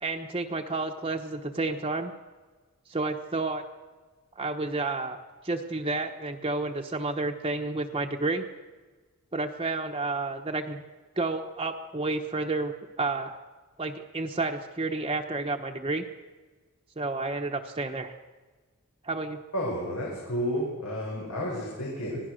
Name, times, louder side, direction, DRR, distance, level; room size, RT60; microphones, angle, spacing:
voice 1, 0.0-2.1 2.9-3.6 4.4-8.5 9.3-10.8 11.2-13.4 13.8-16.1 17.0-18.1 19.0-19.4, right 3 dB, 25° right, 2 dB, 1.0 m, -30 dB
voice 2, 19.5-22.2, equal, 85° left, -3 dB, 6.5 m, -31 dB
26.5 x 17.0 x 6.5 m, 1.3 s
head